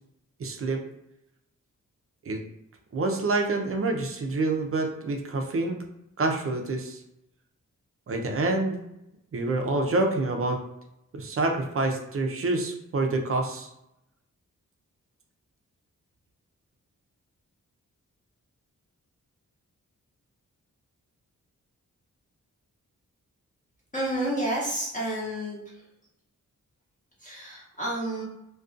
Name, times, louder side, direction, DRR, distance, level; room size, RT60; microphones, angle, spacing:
voice 1, 0.4-0.8 2.3-2.4 2.9-5.8 6.2-7.0 8.1-8.8 9.3-10.6 11.1-13.7, right 2 dB, 45° right, 3 dB, 0.5 m, -27 dB
voice 2, 23.9-25.6 27.2-28.2, right 1 dB, 25° left, -7 dB, 0.8 m, -30 dB
2.4 x 2.3 x 2.5 m, 0.83 s
wide cardioid pair, 80°, 32 cm